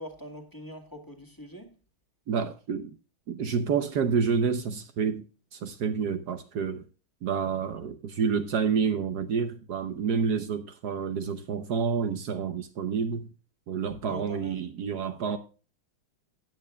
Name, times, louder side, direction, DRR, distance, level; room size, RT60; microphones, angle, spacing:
voice 1, 0.0-1.7 14.0-14.6, equal, 10° left, 1.8 m, -43 dB
voice 2, 2.3-2.9 3.3-5.2 5.5-6.8 7.2-13.3 13.7-15.4, right 6 dB, 60° right, 1.1 m, -29 dB
17.0 x 8.9 x 2.2 m
omnidirectional pair, 2.3 m